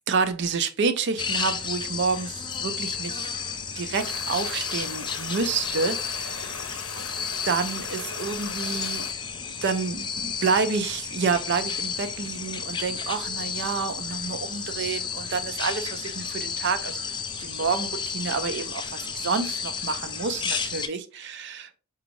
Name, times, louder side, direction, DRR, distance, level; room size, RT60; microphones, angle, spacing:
voice 1, 0.1-3.3 3.8-6.7 7.4-9.1 9.6-17.0 17.4-21.7, right 5 dB, 55° right, 0.5 m, -29 dB
sound 1, 1.2-20.9, left 6 dB, 20° left, 0.3 m, -32 dB
sound 2, 3.9-9.1, left 5 dB, 80° left, 0.6 m, -39 dB
5.0 x 2.4 x 3.0 m
head